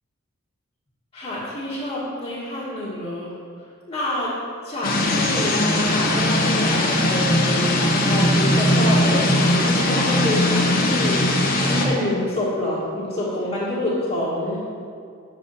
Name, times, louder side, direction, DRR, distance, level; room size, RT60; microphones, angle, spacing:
voice 1, 1.1-3.3 3.9-4.3 4.6-7.7 8.1-14.6, left 1 dB, 25° left, -11 dB, 1.8 m, -27 dB
sound 1, 4.8-11.9, left 1 dB, 45° left, 1.1 m, -19 dB
8.3 x 7.0 x 4.2 m, 2.3 s
head